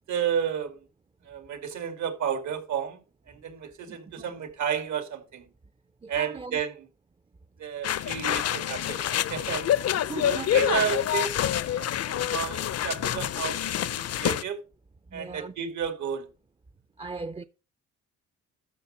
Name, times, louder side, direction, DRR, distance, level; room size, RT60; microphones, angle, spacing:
voice 1, 0.1-0.8 1.2-3.0 3.3-5.5 6.1-6.9 7.6-9.7 10.2-14.6 15.1-16.3, right 7 dB, 70° right, 2.6 m, -32 dB
voice 2, 3.9-4.2 6.0-6.6 10.1-10.6 15.1-15.5 17.0-17.4, right 4 dB, 20° right, 0.6 m, -38 dB
sound 1, 7.8-14.4, left 11 dB, 55° left, 0.6 m, -27 dB
12.5 x 6.7 x 4.3 m
cardioid pair, 90°, 30 cm